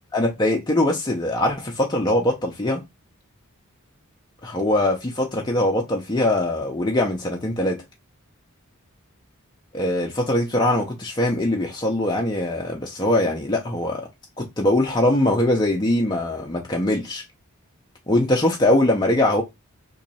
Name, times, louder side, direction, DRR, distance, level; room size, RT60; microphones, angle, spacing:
voice 1, 0.1-2.8 4.4-7.8 9.7-14.1 14.4-17.2 18.1-19.4, left 1 dB, 20° left, 0.6 m, -22 dB
3.0 x 2.8 x 4.1 m
head